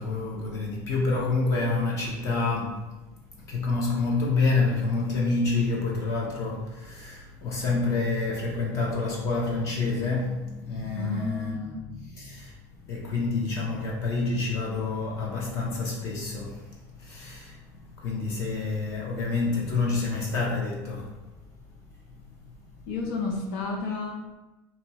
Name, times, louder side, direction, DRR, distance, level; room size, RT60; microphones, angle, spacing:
voice 1, 0.0-2.9 3.4-12.6 12.9-21.2, left 3 dB, 35° left, 0.6 m, -28 dB
voice 2, 10.9-11.9 22.9-24.3, left 3 dB, 80° left, 0.6 m, -32 dB
4.3 x 2.7 x 2.9 m
cardioid pair, 180°, 9 cm